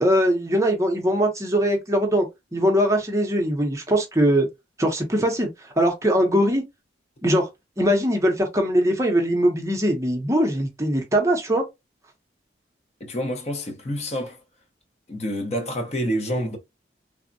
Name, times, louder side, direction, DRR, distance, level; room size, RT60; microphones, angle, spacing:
voice 1, 0.0-2.3 2.5-4.5 4.8-5.5 5.8-6.6 7.2-7.5 7.8-11.6, equal, 15° right, 0.6 m, -21 dB
voice 2, 13.0-14.4 15.1-16.6, equal, 35° left, 0.6 m, -28 dB
3.4 x 2.1 x 2.5 m
head